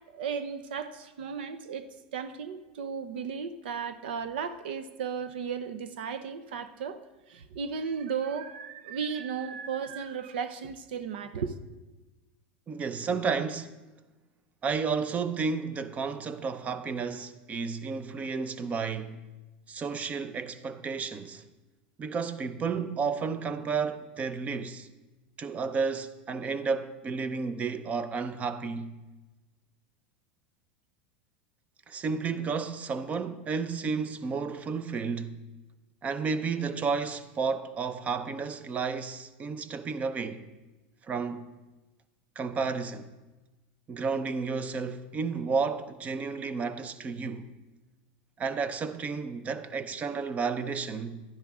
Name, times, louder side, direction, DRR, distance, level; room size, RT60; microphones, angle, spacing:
voice 1, 0.1-1.9 2.1-7.0 7.3-11.5, right 6 dB, 85° right, 0.8 m, -35 dB
voice 2, 12.7-13.8 14.6-19.3 19.7-21.4 22.0-24.9 25.4-28.9 31.9-35.4 36.0-40.5 41.0-41.5 42.4-43.1 43.9-47.5 48.4-51.2, right 5 dB, 25° right, 0.7 m, -32 dB
12.0 x 10.0 x 3.7 m
supercardioid pair, 120°, 5 cm